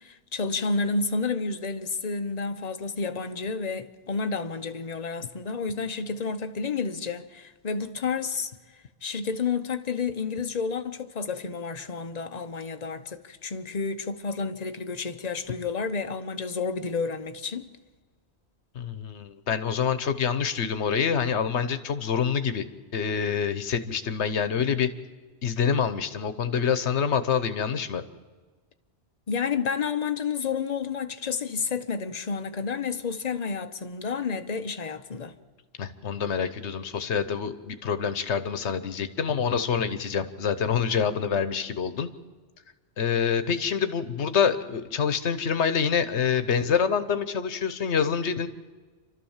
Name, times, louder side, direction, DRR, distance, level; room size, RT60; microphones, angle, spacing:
voice 1, 0.0-8.5 9.0-17.7 29.3-35.3, left 5 dB, 40° left, 1.0 m, -30 dB
voice 2, 18.7-22.7 22.9-24.9 25.4-28.0 35.8-42.1 43.0-48.5, left 7 dB, 75° left, 1.3 m, -26 dB
27.5 x 13.0 x 7.3 m
omnidirectional pair, 1.2 m